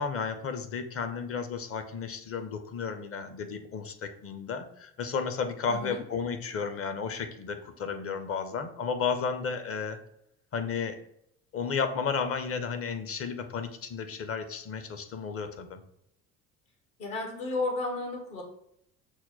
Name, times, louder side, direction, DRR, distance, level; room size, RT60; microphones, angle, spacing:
voice 1, 0.0-10.0 10.5-11.0 11.5-15.8, left 5 dB, 30° left, 8 dB, 0.6 m, -33 dB
voice 2, 5.7-6.0 17.0-18.4, left 2 dB, 60° left, 2 dB, 1.3 m, -32 dB
5.9 x 2.2 x 3.9 m, 0.73 s
figure-of-eight pair, 55°, 46 cm